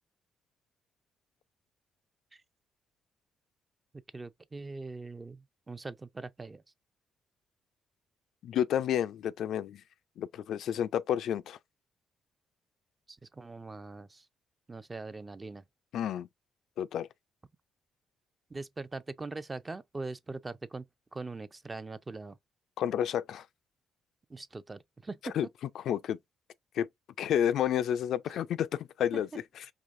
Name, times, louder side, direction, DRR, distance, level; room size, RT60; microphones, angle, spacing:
voice 1, 4.1-6.6 13.1-14.3 14.7-15.6 18.5-20.8 21.1-22.4 24.3-25.4 28.3-28.4 29.1-29.2, right 3 dB, 25° right, 0.5 m, -42 dB
voice 2, 8.4-9.8 10.2-11.6 15.9-16.3 16.8-17.1 22.8-23.4 25.2-25.5 25.9-26.2 26.8-26.9 27.2-29.3, left 10 dB, 75° left, 0.3 m, -30 dB
4.9 x 3.2 x 2.6 m
cardioid pair, 90°, 0 cm